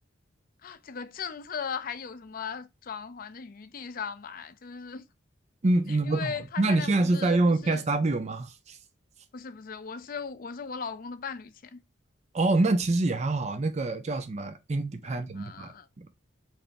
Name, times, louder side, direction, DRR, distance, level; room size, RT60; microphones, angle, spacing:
voice 1, 0.6-5.1 6.1-7.4 7.6-7.8 9.3-11.8 15.3-15.9, left 6 dB, 50° left, 0.5 m, -38 dB
voice 2, 5.6-8.8 12.3-16.1, right 2 dB, 35° right, 0.5 m, -26 dB
3.3 x 2.6 x 3.9 m
head